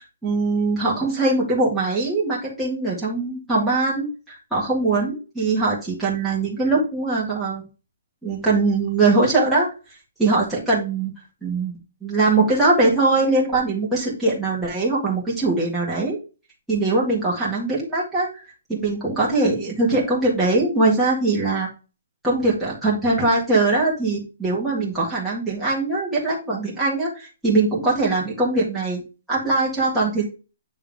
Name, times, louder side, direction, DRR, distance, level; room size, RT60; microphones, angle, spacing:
voice 1, 0.2-7.7 8.2-9.7 10.2-11.1 11.4-11.7 12.0-16.2 16.7-18.3 18.7-21.7 22.2-29.0 29.3-30.2, right 3 dB, ahead, -8 dB, 2.1 m, -21 dB
9.6 x 3.6 x 3.6 m, 0.31 s
hypercardioid pair, 180°, 0 cm